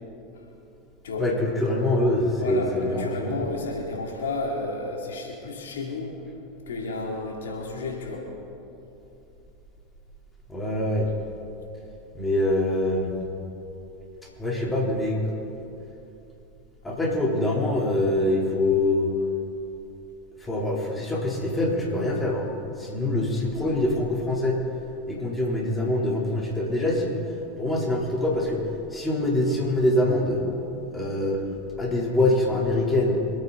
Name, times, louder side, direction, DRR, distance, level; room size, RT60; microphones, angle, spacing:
voice 1, 1.2-3.3 10.5-11.1 12.1-13.1 14.4-15.2 16.8-19.1 20.4-22.5 22.8-24.6 25.1-27.1 27.6-28.6 28.9-30.5 30.9-31.4 31.8-33.2, left 1 dB, 15° left, -3 dB, 3.7 m, -24 dB
voice 2, 2.4-6.1 6.7-8.3, left 3 dB, 80° left, -1 dB, 2.7 m, -32 dB
27.0 x 9.1 x 4.1 m, 2.9 s
hypercardioid pair, 85°, 0 cm